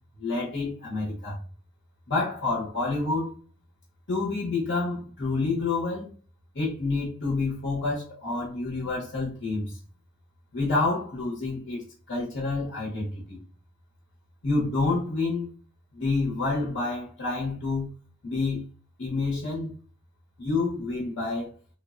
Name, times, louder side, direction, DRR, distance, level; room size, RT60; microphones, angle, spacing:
voice 1, 0.2-1.4 2.1-3.3 4.1-6.1 6.5-9.8 10.5-13.4 14.4-15.5 15.9-17.9 18.2-18.6 19.0-19.7 20.4-21.5, left 3 dB, 65° left, 0.8 m, -28 dB
3.3 x 2.0 x 2.4 m
head